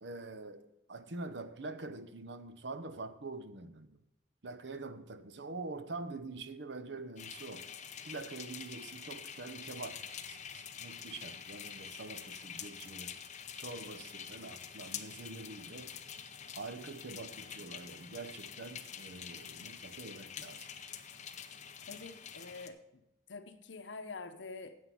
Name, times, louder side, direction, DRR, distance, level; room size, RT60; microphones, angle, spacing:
voice 1, 0.0-4.0 4.4-7.7 8.0-13.2 13.5-16.0 16.5-20.7, right 3 dB, 65° right, 0.8 m, -45 dB
sound 1, 7.2-22.7, left 8 dB, 40° left, 0.7 m, -46 dB
voice 2, 21.9-24.8, left 3 dB, 70° left, 1.0 m, -47 dB
9.7 x 7.8 x 7.1 m
head